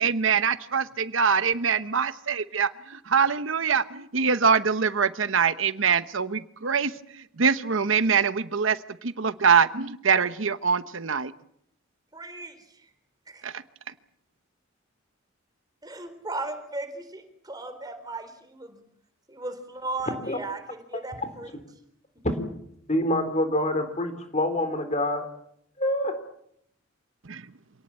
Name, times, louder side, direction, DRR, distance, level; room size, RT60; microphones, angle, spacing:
voice 1, 0.0-11.3 13.4-13.5 27.3-27.4, right 6 dB, 70° right, 1.0 m, -24 dB
voice 2, 12.1-12.9 13.3-13.4 15.8-18.8 19.3-21.5, right 2 dB, 20° right, 3.9 m, -36 dB
voice 3, 22.2-22.5 22.9-25.3 25.8-26.2, left 1 dB, 35° left, 3.7 m, -26 dB
27.0 x 18.5 x 8.7 m
head